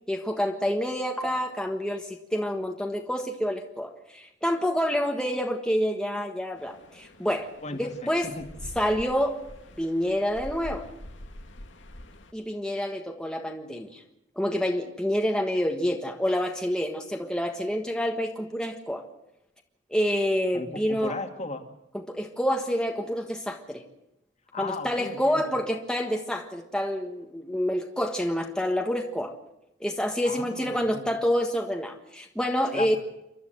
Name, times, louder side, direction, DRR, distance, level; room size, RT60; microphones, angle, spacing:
voice 1, 0.1-7.5 8.1-8.3 8.7-9.4 9.8-10.9 12.3-14.0 14.4-19.1 19.9-21.1 21.9-23.8 24.6-29.3 29.8-33.0, equal, 5° left, 2 dB, 1.5 m, -28 dB
sound 1, 6.6-12.3, left 1 dB, 90° left, 2.1 m, -45 dB
voice 2, 7.6-8.5 20.5-21.6 24.5-25.6 30.2-31.0 32.7-33.0, left 3 dB, 40° left, 6 dB, 2.2 m, -36 dB
28.5 x 12.5 x 7.8 m, 0.86 s
head